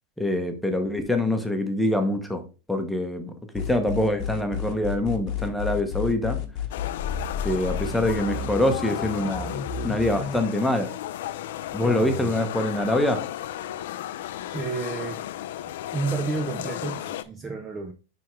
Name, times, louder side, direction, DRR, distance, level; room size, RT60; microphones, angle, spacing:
voice 1, 0.2-2.4 2.7-6.4 7.4-9.6 9.8-10.9 11.7-13.2, left 1 dB, ahead, 1.0 m, -25 dB
sound 1, 3.5-10.4, left 7 dB, 40° left, 1.0 m, -31 dB
sound 2, 6.7-17.2, left 12 dB, 70° left, 0.5 m, -34 dB
voice 2, 11.8-12.3 14.5-15.3 15.9-17.9, right 4 dB, 15° right, 0.5 m, -31 dB
10.5 x 3.5 x 3.2 m
supercardioid pair, 160°, 0 cm